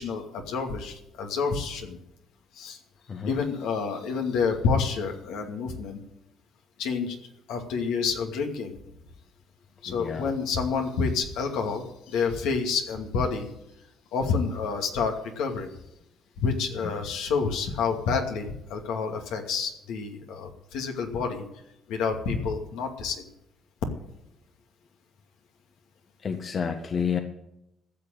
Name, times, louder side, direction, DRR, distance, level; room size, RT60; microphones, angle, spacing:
voice 1, 0.0-2.0 2.6-2.8 3.3-6.0 6.8-7.2 7.5-8.7 9.8-13.5 14.1-15.7 16.4-21.4 21.9-23.2, left 5 dB, 75° left, 3 dB, 2.4 m, -28 dB
voice 2, 9.9-10.3 16.8-16.9 26.2-27.2, left 6 dB, 45° left, 6 dB, 1.5 m, -30 dB
15.0 x 6.8 x 9.2 m, 0.85 s
supercardioid pair, 65°, 0 cm